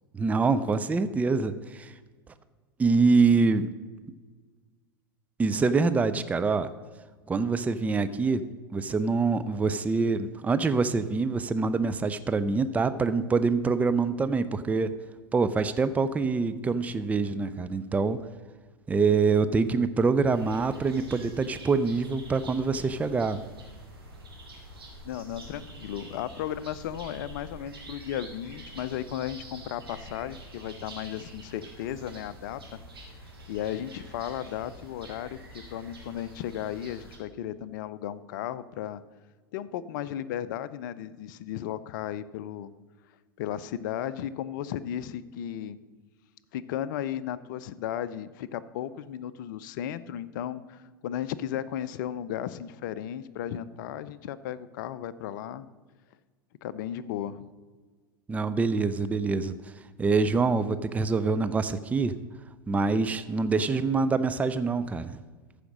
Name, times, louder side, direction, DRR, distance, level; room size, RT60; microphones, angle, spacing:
voice 1, 0.1-1.9 2.8-3.7 5.4-6.7 7.3-8.4 8.7-14.9 15.3-18.2 18.9-23.4 58.3-59.7 60.0-62.2 62.7-65.2, right 4 dB, 10° right, 12 dB, 0.5 m, -25 dB
sound 1, 20.3-37.2, right 1 dB, 85° right, 2.7 m, -46 dB
voice 2, 25.0-32.8 33.5-35.4 35.7-39.0 39.5-42.7 43.4-45.8 46.5-55.7 56.6-57.4, left 10 dB, 55° left, 16 dB, 0.6 m, -35 dB
14.0 x 5.0 x 6.3 m, 1.4 s
figure-of-eight pair, 90°, 12 cm